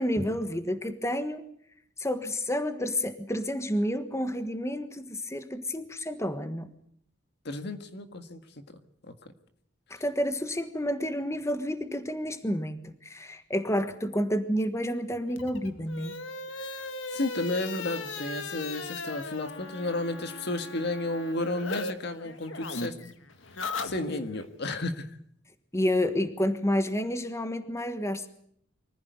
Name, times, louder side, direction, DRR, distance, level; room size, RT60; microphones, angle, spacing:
voice 1, 0.0-1.4 2.0-6.7 9.9-16.2 24.0-24.2 25.7-28.3, equal, 15° left, 10 dB, 1.4 m, -30 dB
voice 2, 7.5-8.5 9.0-9.1 16.6-16.8 17.1-23.0 23.8-25.2, left 2 dB, 60° left, 9 dB, 1.8 m, -32 dB
sound 1, 15.3-21.9 22.2-24.5, left 3 dB, 80° left, 2.0 m, -38 dB
24.5 x 15.0 x 9.5 m, 0.67 s
head